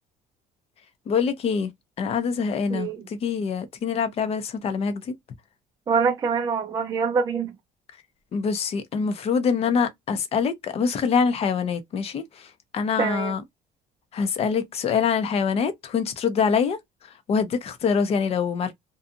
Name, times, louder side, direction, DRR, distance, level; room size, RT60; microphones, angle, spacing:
voice 1, 1.1-1.7 2.0-5.1 8.3-12.5 12.7-13.4 14.1-16.8 17.3-18.7, left 6 dB, 40° left, 0.6 m, -25 dB
voice 2, 2.7-3.0 5.9-7.5 13.0-13.3, right 5 dB, 25° right, 0.4 m, -24 dB
2.5 x 2.3 x 2.6 m
cardioid pair, 145°, 15 cm